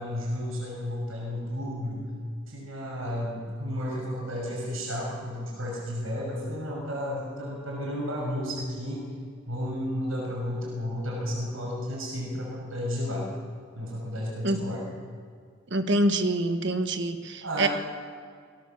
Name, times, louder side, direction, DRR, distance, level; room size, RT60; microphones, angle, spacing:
voice 1, 0.0-2.1 2.5-9.0 9.5-13.3 13.8-14.9 17.4-17.7, equal, 85° right, -2 dB, 6.3 m, -32 dB
voice 2, 15.7-17.7, right 1 dB, 60° right, 8 dB, 1.4 m, -25 dB
20.5 x 18.0 x 7.2 m, 2.1 s
head